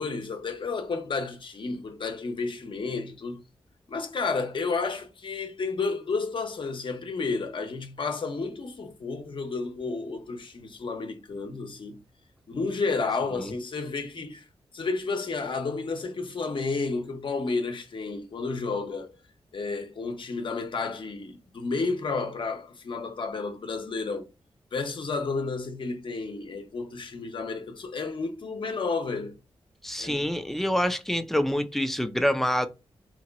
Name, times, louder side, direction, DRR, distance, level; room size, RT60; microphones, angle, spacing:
voice 1, 0.0-3.4 3.9-12.0 12.5-14.4 14.7-19.1 19.5-24.3 24.7-29.4 30.0-30.2, left 4 dB, 50° left, 0.8 m, -31 dB
voice 2, 29.8-32.7, equal, 5° left, 0.4 m, -26 dB
2.9 x 2.2 x 3.9 m
wide cardioid pair, 105°, 10 cm